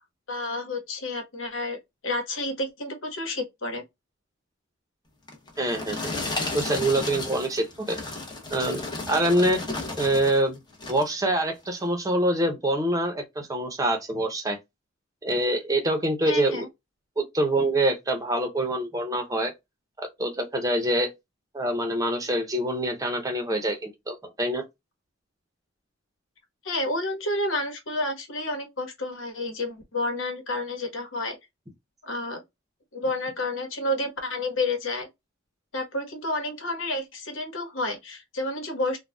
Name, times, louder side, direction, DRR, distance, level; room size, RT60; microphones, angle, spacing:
voice 1, 0.3-1.8 2.0-3.8 16.2-16.7 26.6-31.4 32.0-32.4 32.9-35.1 35.7-39.0, left 2 dB, 75° left, 1.2 m, -30 dB
sound 1, 5.3-10.4 10.7-11.2 11.7-11.9, left 2 dB, 20° left, 0.9 m, -33 dB
voice 2, 5.6-6.1 6.5-8.0 8.5-8.8 9.1-9.6 10.0-10.6 10.9-14.6 15.2-16.6 17.2-19.5 20.2-21.1 21.5-24.6, right 1 dB, 20° right, 0.8 m, -25 dB
3.9 x 2.2 x 2.3 m
head